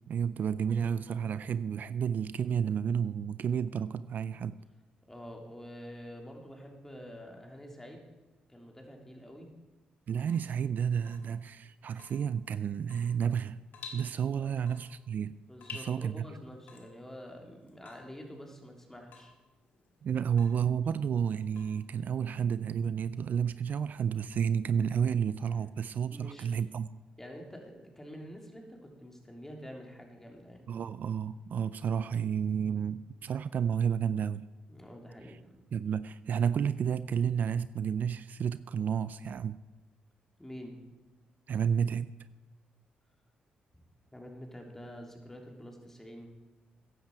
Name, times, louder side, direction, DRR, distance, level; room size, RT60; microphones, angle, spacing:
voice 1, 0.1-4.6 10.1-13.6 13.9-15.4 15.7-16.2 20.0-26.9 30.7-34.5 35.3-35.4 35.7-39.6 41.5-42.1, right 7 dB, 60° right, 16 dB, 0.4 m, -31 dB
voice 2, 5.1-8.0 8.5-9.5 14.4-14.5 15.5-19.3 26.1-26.5 27.2-30.6 34.7-35.6 40.4-40.8 43.8-43.9 44.1-46.3, equal, 10° left, 1 dB, 3.3 m, -47 dB
Water tap faucet / Drip, 10.1-22.3, left 5 dB, 75° left, 1.8 m, -53 dB
14.5 x 10.5 x 4.7 m, 1.2 s
supercardioid pair, 55°, 3 cm